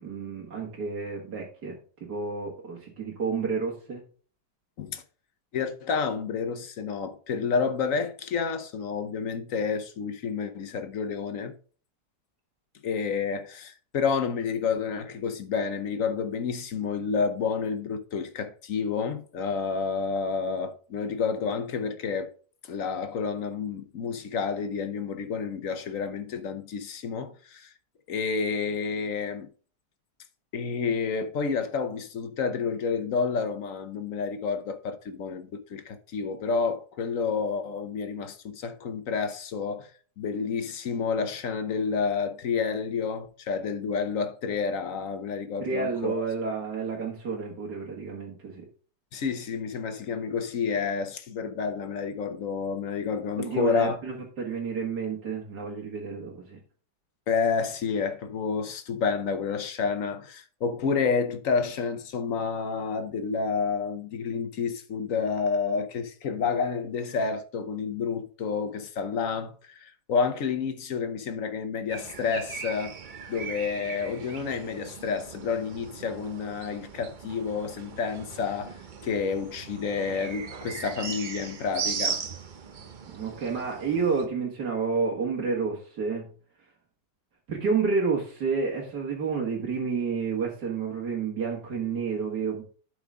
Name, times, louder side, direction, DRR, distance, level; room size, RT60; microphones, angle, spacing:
voice 1, 0.0-4.0 45.6-48.6 53.4-56.6 83.1-86.3 87.5-92.6, right 5 dB, 70° right, 2.3 m, -30 dB
voice 2, 5.5-11.5 12.8-22.3 22.6-27.7 28.1-29.5 30.5-39.9 40.2-46.2 49.1-54.0 57.3-73.0 73.3-82.3, left 5 dB, 55° left, 1.2 m, -29 dB
sound 1, 71.9-84.3, right 6 dB, 50° right, 0.6 m, -38 dB
12.0 x 4.9 x 3.7 m
omnidirectional pair, 1.8 m